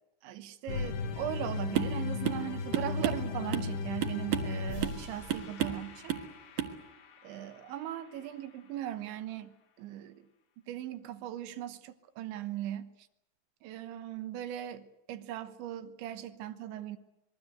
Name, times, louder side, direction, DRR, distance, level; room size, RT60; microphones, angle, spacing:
voice 1, 0.2-6.1 7.2-9.5 9.8-10.3 10.7-12.9 13.6-17.0, right 12 dB, 75° right, 3.4 m, -39 dB
sound 1, 0.7-7.0, left 5 dB, 65° left, 3.9 m, -37 dB
sound 2, 1.8-2.0 2.3-2.5 2.7-3.7 4.0-4.6 4.8-5.0 5.3-5.8 6.1-6.3 6.6-6.8, right 10 dB, 60° right, 2.7 m, -32 dB
26.0 x 21.5 x 8.0 m
omnidirectional pair, 5.5 m